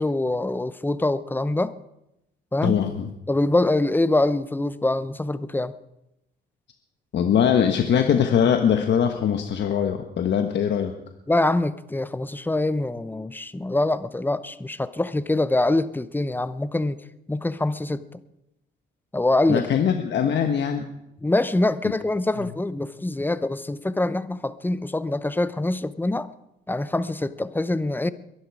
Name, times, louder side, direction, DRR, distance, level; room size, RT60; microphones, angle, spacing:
voice 1, 0.0-1.7 2.5-2.8 3.3-5.7 11.3-17.0 17.3-18.2 19.1-19.7 21.2-26.3 26.7-28.1, left 2 dB, 10° left, 0.8 m, -24 dB
voice 2, 2.6-3.1 7.1-10.9 19.5-20.9, left 8 dB, 65° left, 1.3 m, -22 dB
22.5 x 11.5 x 4.8 m
cardioid pair, 90°, 20 cm